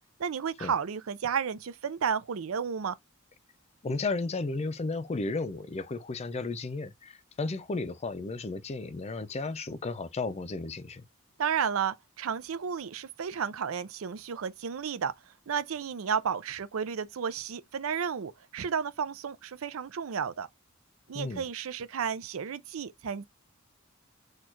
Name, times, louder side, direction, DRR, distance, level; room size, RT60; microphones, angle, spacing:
voice 1, 0.2-2.9 11.4-15.1 15.5-20.5 21.1-23.2, right 7 dB, 80° right, 0.5 m, -32 dB
voice 2, 3.8-11.0 21.1-21.4, left 3 dB, 30° left, 0.4 m, -34 dB
4.4 x 2.4 x 4.4 m
head